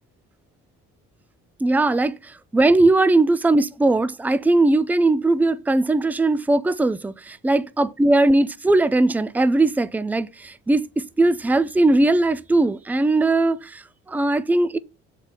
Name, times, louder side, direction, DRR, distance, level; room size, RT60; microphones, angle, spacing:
voice 1, 1.6-14.8, right 2 dB, 5° right, 0.4 m, -19 dB
7.2 x 4.6 x 5.6 m
cardioid pair, 90°, 30 cm